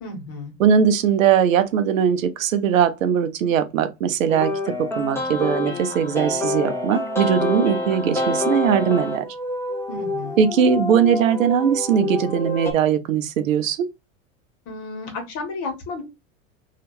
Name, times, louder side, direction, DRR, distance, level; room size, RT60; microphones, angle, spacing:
voice 1, 0.0-0.5 9.9-10.4 14.7-16.0, left 3 dB, 50° left, 1.3 m, -32 dB
voice 2, 0.6-4.5 4.8-9.3 10.4-13.9, right 8 dB, 80° right, 0.6 m, -20 dB
sound 1, 4.3-12.7, left 1 dB, 5° left, 0.8 m, -27 dB
2.8 x 2.4 x 3.0 m
hypercardioid pair, 85°, 39 cm